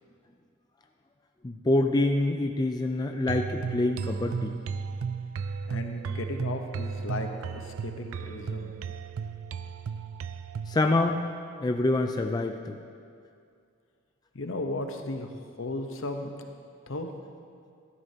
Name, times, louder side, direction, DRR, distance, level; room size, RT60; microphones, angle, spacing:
voice 1, 1.4-4.5 10.7-11.2 11.6-12.8, left 2 dB, 20° left, 3 dB, 0.4 m, -26 dB
sound 1, 3.3-10.8, right 5 dB, 85° right, 0.4 m, -34 dB
voice 2, 5.7-8.7 14.3-15.3 15.6-16.3 16.9-17.1, left 2 dB, 65° left, 5 dB, 0.9 m, -35 dB
14.0 x 12.5 x 2.8 m, 2.3 s
head